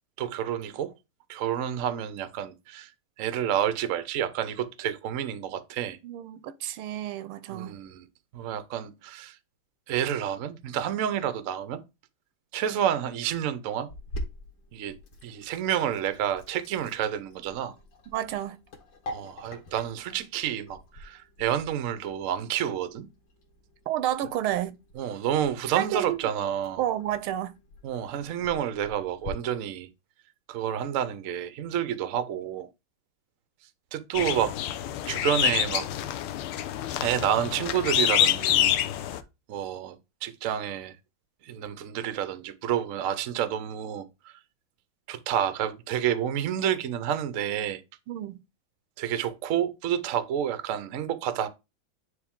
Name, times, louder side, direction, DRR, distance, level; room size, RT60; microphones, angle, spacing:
voice 1, 0.2-0.9 1.3-2.9 3.2-6.0 7.5-8.0 8.3-9.4 9.9-11.8 12.5-13.9 14.7-14.9 15.2-17.7 19.1-23.1 25.0-26.8 27.8-29.9 30.5-32.7 33.9-34.5 35.1-35.8 37.0-38.8 39.5-40.9 41.4-44.1 45.1-47.8 49.0-51.5, right 10 dB, 70° right, 0.7 m, -29 dB
voice 2, 6.0-7.7 18.1-18.6 23.9-24.8 25.8-26.2 26.8-27.6 48.1-48.4, right 12 dB, 90° right, 1.5 m, -30 dB
Sink (filling or washing), 13.9-29.3, left 1 dB, 65° left, 2.1 m, -45 dB
sound 1, 34.1-39.2, left 11 dB, 85° left, 1.5 m, -26 dB
9.4 x 3.2 x 3.6 m
omnidirectional pair, 2.3 m